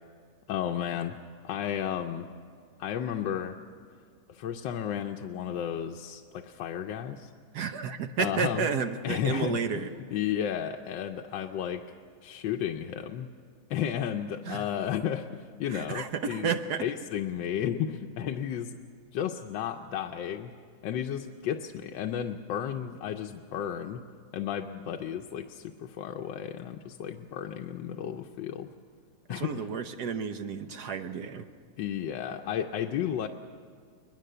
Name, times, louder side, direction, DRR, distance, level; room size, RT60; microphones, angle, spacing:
voice 1, 0.5-1.2 1.4-2.3 2.8-3.6 4.3-7.3 8.2-8.7 9.0-11.8 12.2-13.3 13.7-16.5 16.8-18.8 19.1-20.5 20.8-24.0 24.3-28.7 29.3-29.7 31.8-33.3, left 9 dB, 85° left, 3 dB, 1.4 m, -33 dB
voice 2, 7.5-9.9 14.5-14.7 15.7-16.8 29.3-31.5, right 6 dB, 65° right, 8 dB, 1.4 m, -31 dB
22.0 x 21.0 x 6.8 m, 2.2 s
omnidirectional pair, 2.0 m